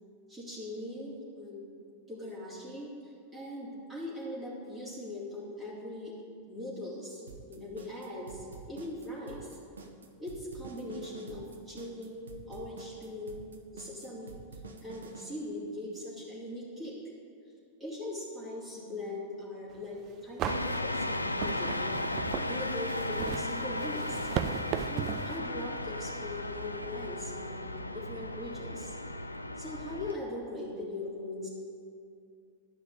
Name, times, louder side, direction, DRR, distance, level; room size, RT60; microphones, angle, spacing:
voice 1, 0.3-1.7 2.1-6.1 6.5-7.2 7.5-9.6 10.2-13.4 13.7-14.4 14.8-17.0 17.8-22.0 22.5-24.3 24.8-28.9 29.6-31.5, left 1 dB, 15° right, -9 dB, 3.3 m, -40 dB
sound 1, 7.3-15.3, right 4 dB, 70° right, 0.9 m, -48 dB
sound 2, 19.8-19.9 20.4-25.4, right 9 dB, 35° right, 0.5 m, -36 dB
sound 3, 20.5-30.2, left 1 dB, 85° left, 0.4 m, -35 dB
11.0 x 5.7 x 8.2 m, 2.3 s
figure-of-eight pair, 90°, 0 cm